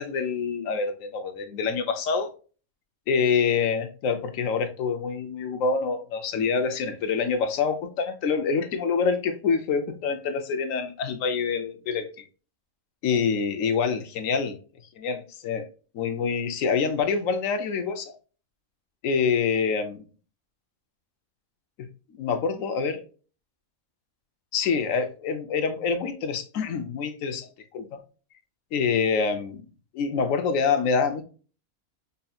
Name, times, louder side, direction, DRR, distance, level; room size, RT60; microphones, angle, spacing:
voice 1, 0.0-2.3 3.1-12.2 13.0-14.6 15.0-15.7 15.9-18.1 19.0-20.0 22.1-23.0 24.5-28.0 28.7-29.6 29.9-31.2, left 5 dB, 70° left, 1.0 m, -26 dB
5.3 x 2.7 x 2.3 m
omnidirectional pair, 1.5 m